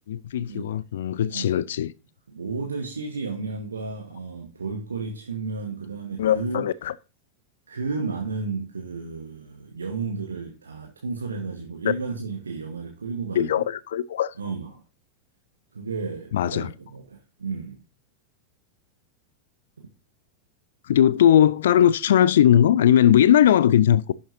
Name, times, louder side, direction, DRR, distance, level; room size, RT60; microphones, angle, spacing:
voice 1, 0.1-1.9 6.2-6.9 13.4-14.3 16.3-16.7 20.8-24.1, left 10 dB, 60° left, 0.4 m, -19 dB
voice 2, 2.3-6.7 7.7-13.6 14.4-14.8 15.7-17.8, right 4 dB, 75° right, 1.4 m, -32 dB
11.0 x 7.1 x 2.7 m
figure-of-eight pair, 90°, 0 cm